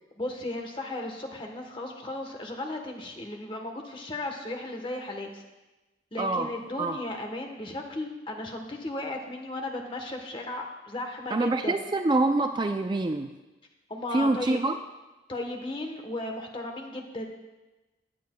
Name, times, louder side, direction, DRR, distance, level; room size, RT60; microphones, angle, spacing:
voice 1, 0.2-5.4 6.1-11.8 13.9-14.6 15.3-17.2, left 2 dB, 30° left, 3 dB, 1.1 m, -35 dB
voice 2, 6.2-6.5 6.8-7.0 11.3-13.3 14.1-14.8, right 2 dB, 25° right, 6 dB, 0.3 m, -26 dB
17.5 x 8.6 x 2.2 m, 1.1 s
head